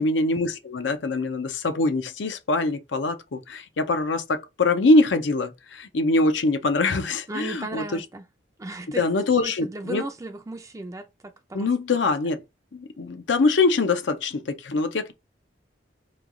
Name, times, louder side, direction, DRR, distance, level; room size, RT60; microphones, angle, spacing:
voice 1, 0.0-8.1 8.9-10.1 11.5-12.4 12.7-15.1, left 3 dB, 75° left, 0.6 m, -23 dB
voice 2, 7.3-8.2 8.6-9.0 9.4-11.1 11.5-11.7, right 2 dB, 15° right, 0.4 m, -35 dB
3.1 x 2.3 x 3.7 m
head